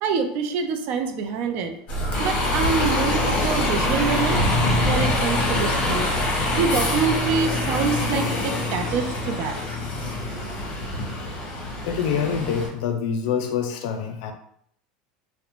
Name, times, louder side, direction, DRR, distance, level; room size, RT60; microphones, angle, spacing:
voice 1, 0.0-1.7 2.2-4.4 4.8-6.1 6.5-9.6, right 6 dB, 55° right, 6 dB, 0.4 m, -26 dB
Bus, 1.9-12.7, left 1 dB, 40° left, 0.9 m, -24 dB
voice 2, 11.9-14.3, left 7 dB, 70° left, 6 dB, 0.4 m, -26 dB
2.4 x 2.1 x 2.9 m, 0.69 s
supercardioid pair, 120°, 4 cm